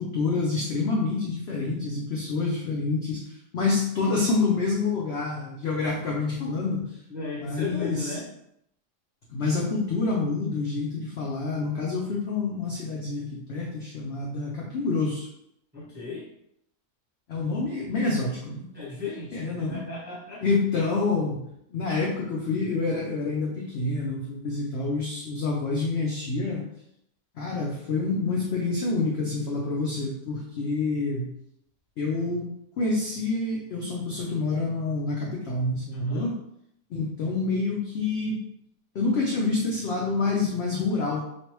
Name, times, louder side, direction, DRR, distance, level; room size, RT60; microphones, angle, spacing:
voice 1, 0.0-7.0 7.4-8.1 9.3-15.3 17.3-18.7 19.3-19.8 20.4-21.4 21.7-26.7 27.3-31.4 32.0-32.5 32.8-36.3 36.9-38.4 38.9-41.2, left 3 dB, 75° left, -2 dB, 0.6 m, -27 dB
voice 2, 7.1-8.3 15.7-16.3 18.7-20.4 35.9-36.2, left 3 dB, 10° right, -8 dB, 0.5 m, -35 dB
3.2 x 2.4 x 3.0 m, 0.76 s
omnidirectional pair, 1.7 m